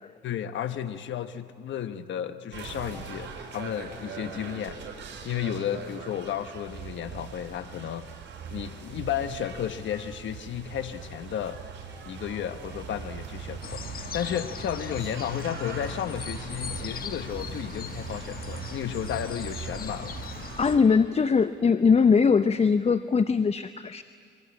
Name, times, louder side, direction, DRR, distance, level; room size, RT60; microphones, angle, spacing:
voice 1, 0.2-4.8 5.2-8.0 8.5-11.6 12.1-20.2, left 9 dB, 70° left, 10 dB, 1.2 m, -33 dB
sound 1, 2.5-20.8, right 6 dB, 65° right, 6.0 m, -40 dB
sound 2, 13.6-20.8, left 7 dB, 50° left, 1.1 m, -40 dB
voice 2, 20.6-24.0, left 5 dB, 30° left, 12 dB, 0.7 m, -21 dB
27.5 x 23.0 x 8.5 m, 2.2 s
cardioid pair, 90°, 20 cm